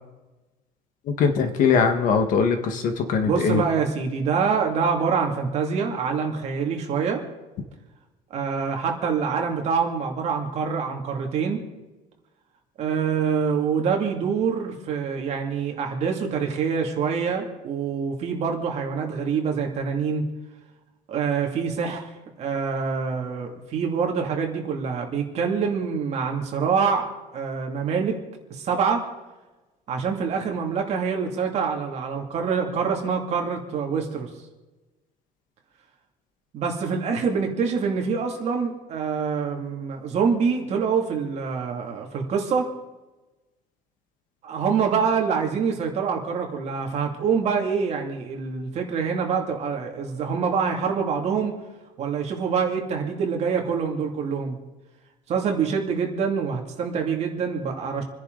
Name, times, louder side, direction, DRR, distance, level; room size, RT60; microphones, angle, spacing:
voice 1, 1.2-3.6, left 5 dB, 50° left, 7 dB, 1.7 m, -21 dB
voice 2, 3.2-7.2 8.3-11.6 12.8-20.2 21.1-22.1 22.4-27.1 27.3-28.2 28.5-29.0 29.9-34.3 36.5-42.7 44.4-51.5 52.0-54.6 55.3-58.0, right 6 dB, 40° right, 2 dB, 2.6 m, -25 dB
28.5 x 10.5 x 4.0 m, 1.1 s
cardioid pair, 175°, 17 cm